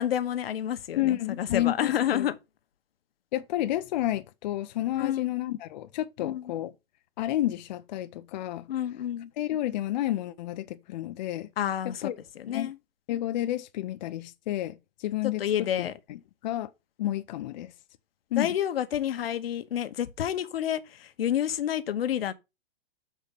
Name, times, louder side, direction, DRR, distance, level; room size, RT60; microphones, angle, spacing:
voice 1, 0.0-2.3 4.9-5.3 6.2-6.4 8.7-9.3 11.6-12.0 12.4-12.7 15.4-15.9 18.4-22.3, left 10 dB, 80° left, 1.0 m, -29 dB
voice 2, 1.0-2.3 3.3-6.7 7.2-8.7 9.4-11.5 11.8-12.2 12.5-12.7 13.1-16.7 17.0-17.7 18.3-18.6, left 13 dB, 50° left, 0.5 m, -31 dB
6.6 x 4.3 x 6.5 m
hypercardioid pair, 150°, 29 cm